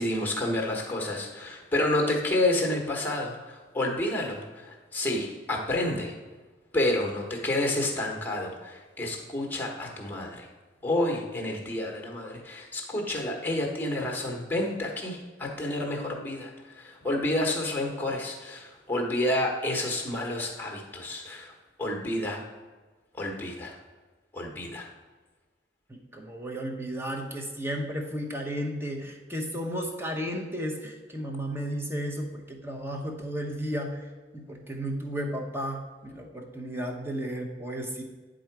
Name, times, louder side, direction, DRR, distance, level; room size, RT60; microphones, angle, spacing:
voice 1, 0.0-6.1 6.7-10.5 10.8-21.5 21.8-22.4 23.1-23.8 24.3-24.9, left 1 dB, 10° left, 1 dB, 1.2 m, -29 dB
voice 2, 25.9-34.0 34.3-38.0, equal, 15° right, 2 dB, 0.9 m, -33 dB
9.4 x 3.8 x 4.6 m, 1.3 s
head